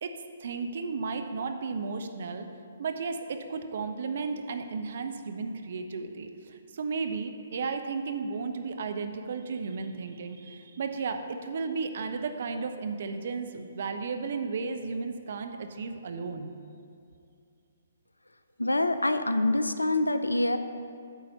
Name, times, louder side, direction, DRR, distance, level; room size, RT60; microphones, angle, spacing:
voice 1, 0.4-2.5 2.8-16.5, right 4 dB, 55° right, 7 dB, 0.6 m, -34 dB
voice 2, 18.6-20.6, left 2 dB, 85° left, 10 dB, 0.5 m, -25 dB
9.3 x 4.1 x 6.7 m, 2.4 s
figure-of-eight pair, 130°, 0 cm